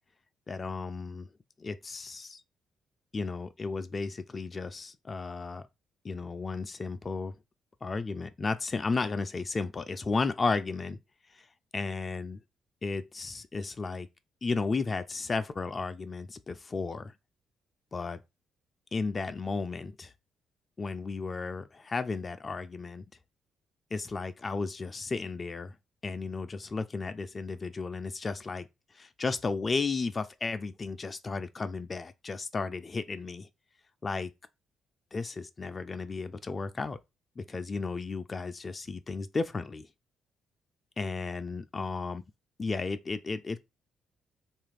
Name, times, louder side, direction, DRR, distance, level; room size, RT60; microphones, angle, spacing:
voice 1, 0.5-1.3 1.6-2.4 3.1-5.7 6.0-7.3 7.8-11.0 11.3-11.4 11.7-12.4 12.8-14.1 14.4-17.1 17.9-18.2 18.9-20.1 20.8-23.0 23.9-25.7 26.0-28.7 28.9-33.5 34.0-34.3 35.1-37.0 37.4-39.9 41.0-42.2 42.6-43.6, left 4 dB, 30° left, 0.3 m, -34 dB
3.0 x 2.4 x 3.2 m
cardioid pair, 90°, 0 cm